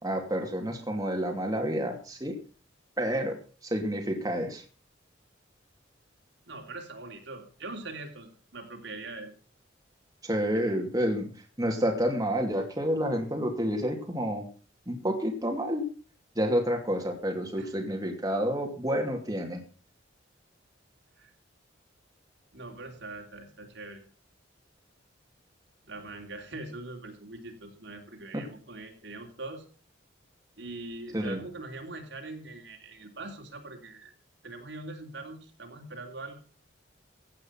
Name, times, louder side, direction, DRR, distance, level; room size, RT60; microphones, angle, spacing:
voice 1, 0.0-2.4 3.0-3.4 3.7-4.6 10.2-11.3 11.6-14.4 14.9-15.8 16.4-19.6 28.3-28.4 31.1-31.4, equal, 20° right, 2 dB, 2.6 m, -29 dB
voice 2, 6.5-9.3 10.5-10.8 17.6-17.7 21.2-21.3 22.5-24.0 25.9-29.6 30.6-34.1 34.4-36.4, right 2 dB, 65° right, 3 dB, 3.2 m, -42 dB
16.0 x 8.9 x 5.8 m, 0.38 s
head